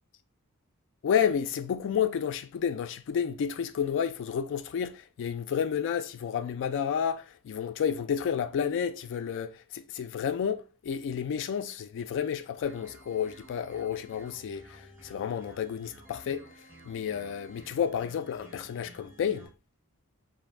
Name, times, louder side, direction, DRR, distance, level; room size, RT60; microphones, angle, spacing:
voice 1, 1.0-16.5 16.8-19.5, left 8 dB, 55° left, 0.3 m, -31 dB
sound 1, 12.6-19.5, right 1 dB, 10° right, 0.9 m, -53 dB
2.4 x 2.0 x 3.2 m
head